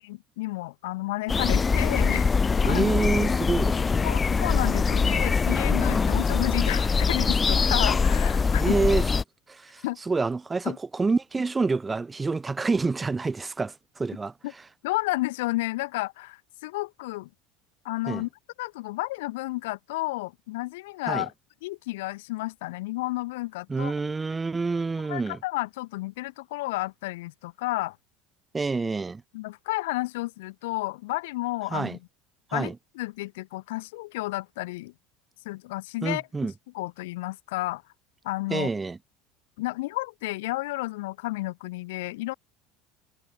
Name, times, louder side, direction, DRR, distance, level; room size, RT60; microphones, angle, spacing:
voice 1, 0.0-2.3 2.6-2.9 4.0-8.8 9.8-10.0 10.6-10.8 14.4-14.5 14.8-17.3 17.8-18.3 18.6-21.3 21.6-23.9 25.1-28.0 29.3-32.0 32.5-34.9 35.4-36.5 36.7-37.8 38.2-38.7 39.6-42.3, left 20 dB, 75° left, 4.6 m, -31 dB
sound 1, 1.3-9.2, left 5 dB, 25° left, 3.0 m, -23 dB
voice 2, 2.6-4.1 8.6-9.1 9.5-14.3 18.1-18.3 21.1-21.3 23.7-25.4 28.5-29.2 31.7-32.0 32.5-32.7 36.0-36.5 38.5-39.0, right 4 dB, 20° right, 6.3 m, -27 dB
hypercardioid pair, 75°, 0 cm